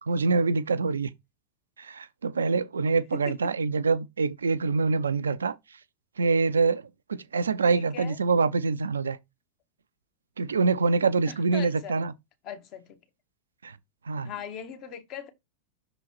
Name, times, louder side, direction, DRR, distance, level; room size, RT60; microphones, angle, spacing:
voice 1, 0.0-1.1 1.8-5.6 6.2-9.2 10.4-12.1 13.6-13.8 14.1-14.3, right 4 dB, 70° right, 0.5 m, -25 dB
voice 2, 7.7-8.2 11.3-12.0 12.4-13.0 14.2-15.3, left 8 dB, 40° left, 1.4 m, -40 dB
6.3 x 3.9 x 4.3 m
figure-of-eight pair, 90°, 0 cm